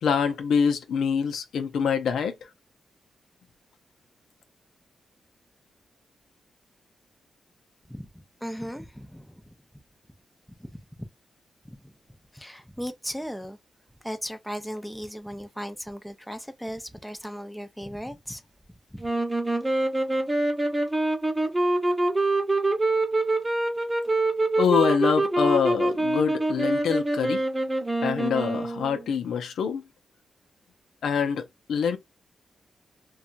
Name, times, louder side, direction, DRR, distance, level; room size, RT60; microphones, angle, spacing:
voice 1, 0.0-2.3 24.6-27.4 28.0-29.8 31.0-32.0, left 6 dB, 85° left, 0.5 m, -25 dB
voice 2, 7.9-9.6 10.6-11.1 11.6-11.9 12.3-13.6 14.0-18.4 18.9-19.0, equal, 5° left, 0.5 m, -37 dB
sound 1, 19.0-29.0, right 2 dB, 20° right, 0.9 m, -25 dB
2.8 x 2.3 x 2.5 m
cardioid pair, 65°, 0 cm